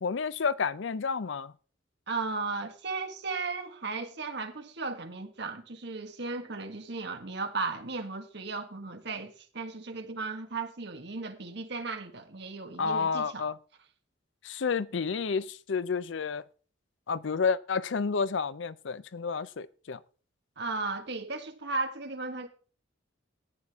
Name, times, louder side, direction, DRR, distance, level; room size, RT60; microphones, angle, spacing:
voice 1, 0.0-1.5 12.8-13.6 14.4-16.4 17.1-20.0, left 5 dB, 70° left, 0.5 m, -30 dB
voice 2, 2.1-13.4 20.6-22.5, right 3 dB, 60° right, 1.7 m, -35 dB
14.0 x 9.7 x 3.6 m
head